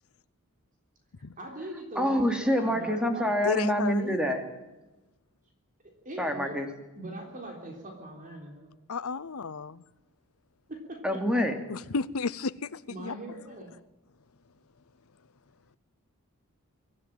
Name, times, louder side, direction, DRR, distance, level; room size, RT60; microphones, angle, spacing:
voice 1, 1.4-3.4 5.8-6.6 6.9-8.7 10.7-11.3 12.9-13.7, right 1 dB, 35° right, 3.6 m, -41 dB
voice 2, 2.0-4.4 6.2-6.7 11.0-11.6, equal, 5° right, 2.8 m, -26 dB
voice 3, 3.4-4.2 8.9-9.8 11.7-13.1, left 4 dB, 70° left, 0.7 m, -32 dB
25.0 x 13.0 x 9.3 m
head